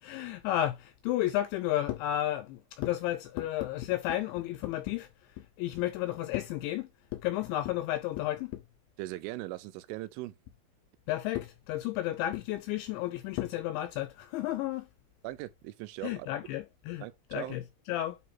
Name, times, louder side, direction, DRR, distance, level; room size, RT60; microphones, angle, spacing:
voice 1, 0.0-8.6 11.1-14.9 16.0-18.2, left 14 dB, 85° left, 2.6 m, -32 dB
voice 2, 9.0-10.4 15.2-16.3 17.0-17.6, right 17 dB, 85° right, 3.0 m, -40 dB
9.4 x 3.2 x 4.3 m
omnidirectional pair, 5.8 m